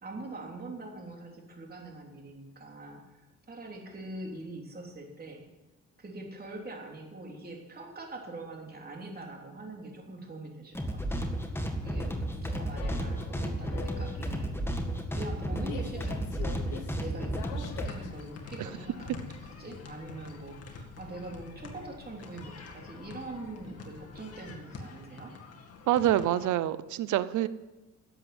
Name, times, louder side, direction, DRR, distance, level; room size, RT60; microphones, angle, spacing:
voice 1, 0.0-3.2 3.5-5.4 6.0-11.3 11.8-14.5 15.1-25.3, right 2 dB, 30° right, 0 dB, 3.4 m, -43 dB
sound 1, 10.7-17.9, right 1 dB, 10° left, 1.8 m, -33 dB
sound 2, 11.3-24.6, left 8 dB, 80° left, 1.1 m, -47 dB
sound 3, 17.6-26.5, left 3 dB, 55° left, 2.0 m, -47 dB
voice 2, 25.9-27.5, right 13 dB, 75° right, 15 dB, 0.7 m, -26 dB
12.0 x 7.9 x 7.9 m, 1.1 s
cardioid pair, 90°, 30 cm